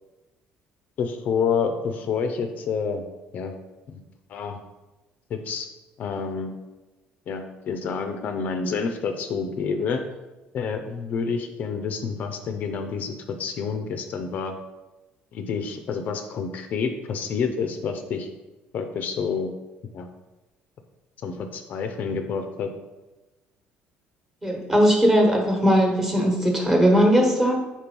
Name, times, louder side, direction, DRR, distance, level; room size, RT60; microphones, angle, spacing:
voice 1, 1.0-3.1 3.3-3.5 3.9-4.0 4.3-4.6 5.3-5.7 6.0-6.5 7.3-10.0 10.5-14.6 15.3-18.3 18.7-19.5 19.9-20.1 21.2-22.7, left 5 dB, 50° left, 7 dB, 0.5 m, -28 dB
voice 2, 24.4-27.6, equal, 10° right, 1 dB, 1.2 m, -19 dB
4.5 x 4.5 x 5.3 m, 1.1 s
cardioid pair, 140°, 4 cm